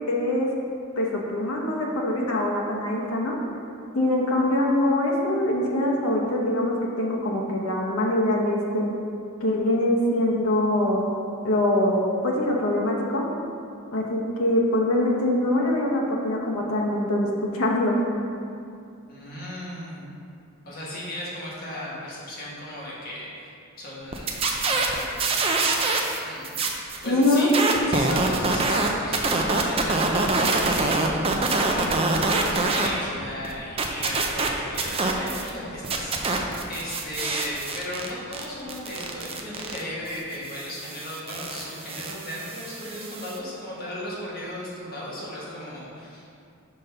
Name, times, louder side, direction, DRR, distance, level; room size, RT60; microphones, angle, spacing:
voice 1, 0.1-0.5 1.0-3.4 3.9-8.9 9.4-11.0 11.4-13.2 13.9-17.3 17.5-18.0 27.0-27.5, left 1 dB, 80° left, -2 dB, 0.9 m, -23 dB
voice 2, 19.1-20.1 20.6-23.5 23.8-27.6 27.9-46.4, left 1 dB, 45° left, -7 dB, 1.4 m, -36 dB
sound 1, 24.1-26.2 26.4-32.9 33.2-35.5 35.8-43.4, right 3 dB, 25° right, 0.4 m, -25 dB
5.3 x 3.7 x 5.6 m, 2.5 s
head